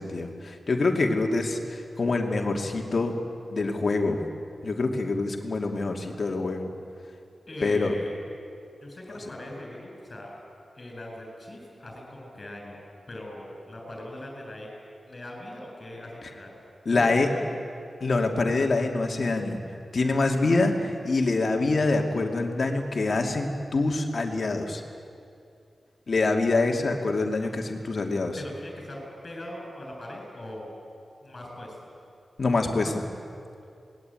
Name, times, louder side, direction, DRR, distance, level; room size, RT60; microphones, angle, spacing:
voice 1, 0.0-3.2 3.5-4.2 4.6-6.7 7.6-7.9 16.9-17.3 18.0-19.6 19.9-24.8 26.1-28.4 32.4-33.1, left 3 dB, 50° left, 2 dB, 2.6 m, -25 dB
voice 2, 7.5-8.1 8.8-10.3 10.7-12.8 13.1-14.7 15.1-16.5 16.9-17.6 28.4-30.8 31.2-31.9, left 1 dB, 30° left, 1 dB, 7.8 m, -40 dB
27.0 x 20.5 x 9.1 m, 2.5 s
wide cardioid pair, 155°, 0 cm